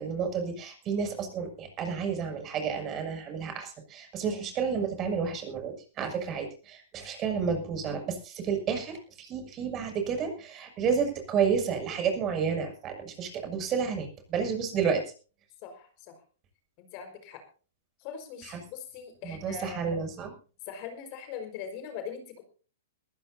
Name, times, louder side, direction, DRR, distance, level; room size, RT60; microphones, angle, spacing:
voice 1, 0.0-15.0 18.4-18.6 19.2-20.3, right 6 dB, 30° right, 4 dB, 6.9 m, -31 dB
voice 2, 15.6-16.1 16.8-17.4 18.0-19.9 20.7-22.4, left 7 dB, 45° left, 6 dB, 4.9 m, -41 dB
22.5 x 15.0 x 2.8 m, 0.37 s
hypercardioid pair, 120°, 0 cm